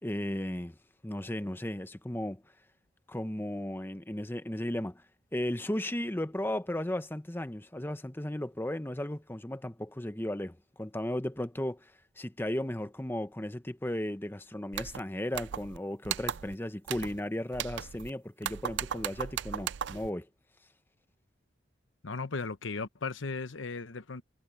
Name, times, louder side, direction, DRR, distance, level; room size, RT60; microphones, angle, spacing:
voice 1, 0.0-0.8 1.0-2.4 3.1-5.0 5.3-11.9 12.2-20.3, left 1 dB, 10° left, 0.9 m, -35 dB
sound 1, 14.7-15.0 15.3-15.8 16.0-16.5 16.9-17.2 17.5-18.1 18.4-20.1, right 9 dB, 65° right, 0.4 m, -36 dB
voice 2, 22.0-24.2, left 4 dB, 75° left, 0.9 m, -36 dB
head